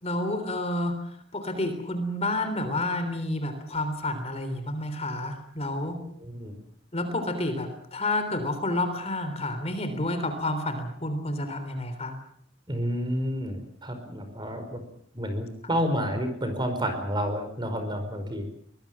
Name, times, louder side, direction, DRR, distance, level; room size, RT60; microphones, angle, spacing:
voice 1, 0.0-6.0 6.9-12.1, left 1 dB, 30° left, 8 dB, 3.5 m, -30 dB
voice 2, 6.2-6.5 12.7-14.8 15.1-18.5, equal, 25° right, 7 dB, 5.0 m, -30 dB
23.5 x 21.0 x 7.6 m, 0.65 s
head